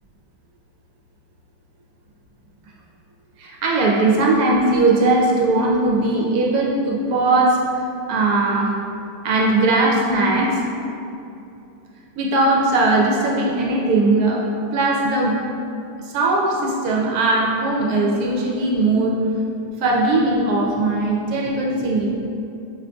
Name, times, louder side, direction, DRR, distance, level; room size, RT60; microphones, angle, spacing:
voice 1, 3.4-7.6 8.1-8.7 9.2-10.6 12.2-14.4 14.7-15.4 16.0-19.2 19.8-22.1, right 2 dB, 70° right, -2 dB, 1.0 m, -19 dB
5.3 x 2.5 x 2.2 m, 2.7 s
omnidirectional pair, 1.7 m